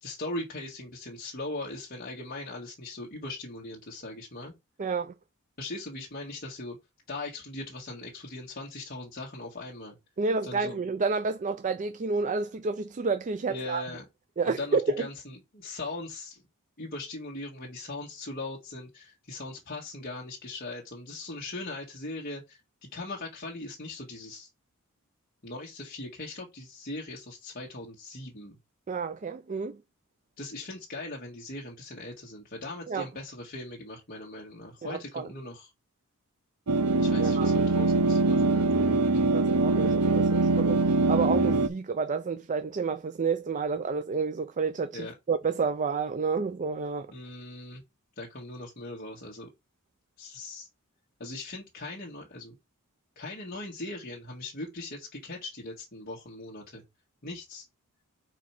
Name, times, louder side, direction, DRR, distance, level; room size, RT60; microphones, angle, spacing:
voice 1, 0.0-4.5 5.6-6.8 7.1-10.0 10.4-10.7 13.5-14.0 14.4-16.4 16.8-24.5 25.4-28.6 30.4-35.7 37.0-39.1 44.9-45.1 47.1-47.8 48.2-49.5 50.2-50.7 51.2-52.6 53.2-56.8 57.2-57.7, left 2 dB, 45° left, 1.7 m, -40 dB
voice 2, 4.8-5.1 10.2-13.8 14.4-15.1 28.9-29.8 32.9-33.1 34.8-35.3 37.2-37.5 39.3-47.1, right 4 dB, 35° right, 0.4 m, -30 dB
sound 1, 36.7-41.7, right 3 dB, 90° right, 0.7 m, -23 dB
4.8 x 4.5 x 5.9 m
head